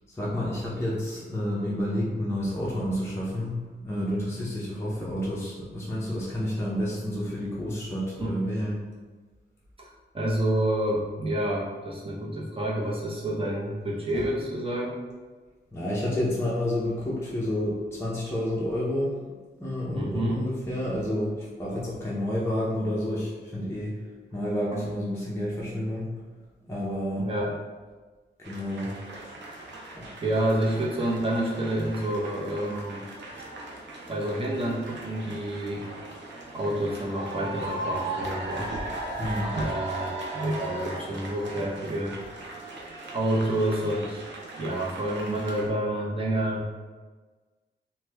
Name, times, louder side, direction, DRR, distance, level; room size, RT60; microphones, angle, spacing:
voice 1, 0.1-3.6 3.8-8.8 14.1-14.2 15.7-19.2 19.6-24.0 24.3-26.1 26.7-27.3 28.4-28.9 29.9-30.0 39.2-39.6, left 1 dB, 15° left, -6 dB, 0.6 m, -29 dB
voice 2, 10.1-15.0 19.9-20.4 27.2-27.6 29.7-33.0 34.1-35.8 36.5-38.7 39.5-42.2 43.1-44.2 44.6-46.7, right 1 dB, 30° right, -4 dB, 0.7 m, -28 dB
sound 1, 28.4-45.7, right 2 dB, 80° right, 0.5 m, -38 dB
3.0 x 2.2 x 3.3 m, 1.3 s
wide cardioid pair, 110°, 19 cm